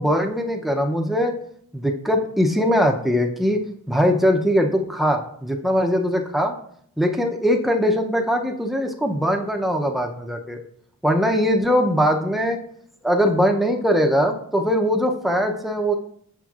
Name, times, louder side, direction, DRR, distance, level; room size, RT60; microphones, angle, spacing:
voice 1, 0.0-1.3 1.7-3.6 3.9-6.6 7.0-10.6 11.0-12.6 13.0-16.0, equal, ahead, 2 dB, 0.5 m, -21 dB
7.5 x 6.2 x 2.4 m, 0.66 s
head